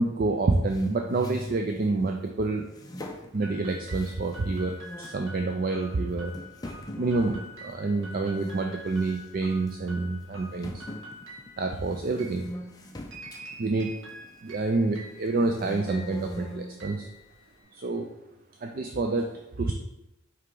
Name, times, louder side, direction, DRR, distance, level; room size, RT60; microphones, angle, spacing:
voice 1, 0.0-2.6 3.3-6.3 7.0-10.8 11.6-12.5 13.6-13.9 14.4-17.1 17.7-18.1 18.6-19.3 19.6-19.7, right 3 dB, 40° right, 4 dB, 0.4 m, -28 dB
sound 1, 0.7-2.2 2.7-4.5 4.8-5.2 5.8-5.9 6.3-8.7 9.0-9.3 9.7-9.8 10.6-14.6 15.1-16.8, left 1 dB, 15° left, 0.5 m, -41 dB
sound 2, 3.4-17.9, equal, 60° right, 1.4 m, -47 dB
5.6 x 4.7 x 3.8 m, 0.91 s
head